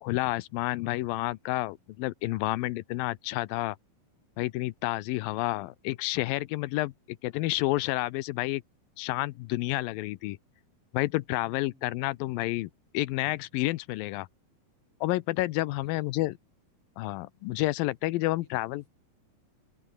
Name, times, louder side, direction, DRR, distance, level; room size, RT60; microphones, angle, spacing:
voice 1, 0.0-3.8 4.4-8.6 9.0-10.4 10.9-12.7 12.9-14.3 15.0-16.3 17.0-18.8, left 18 dB, 85° left, 2.5 m, -30 dB
voice 2, 11.4-12.0 15.8-16.1 18.3-18.9, left 3 dB, 40° left, 8.0 m, -59 dB
omnidirectional pair, 4.0 m